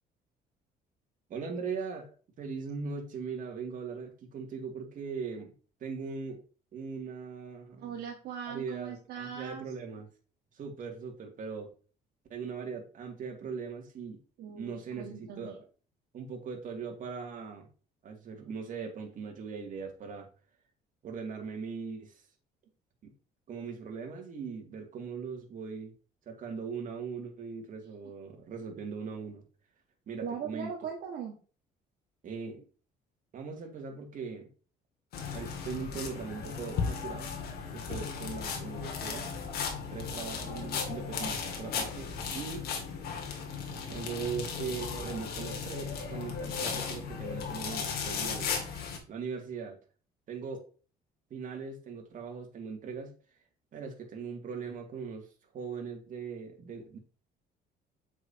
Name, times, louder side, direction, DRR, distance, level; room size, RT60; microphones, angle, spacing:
voice 1, 1.3-5.5 5.8-6.4 6.7-7.9 8.5-10.1 10.5-11.7 12.3-14.2 14.5-15.7 16.1-17.7 18.0-20.3 21.0-22.2 23.0-23.1 23.5-25.9 26.3-29.4 30.1-30.7 32.2-32.6 33.3-34.5 35.3-37.3 37.7-39.3 39.9-42.6 43.9-48.5 49.1-49.8 50.3-50.7 51.3-53.1 53.7-55.3 55.5-57.0, right 5 dB, 50° right, 2 dB, 2.6 m, -40 dB
voice 2, 7.8-9.7 14.4-15.6 30.2-31.4, right 7 dB, 70° right, -1 dB, 1.8 m, -40 dB
sound 1, 35.1-49.0, left 6 dB, 65° left, 2.3 m, -36 dB
8.2 x 6.2 x 3.0 m, 0.37 s
cardioid pair, 110°, 17 cm